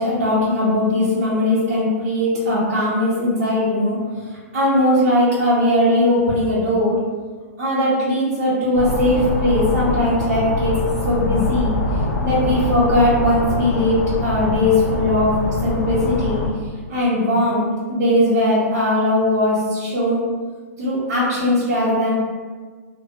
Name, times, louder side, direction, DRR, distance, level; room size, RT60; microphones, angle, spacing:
voice 1, 0.0-4.0 4.5-7.0 7.6-10.8 11.0-11.8 12.2-15.3 15.6-16.4 16.9-20.2 20.8-22.1, left 1 dB, 50° right, -12 dB, 1.2 m, -19 dB
sound 1, 8.7-16.5, left 2 dB, 75° left, 0.6 m, -24 dB
3.1 x 2.2 x 3.1 m, 1.5 s
hypercardioid pair, 150°, 9 cm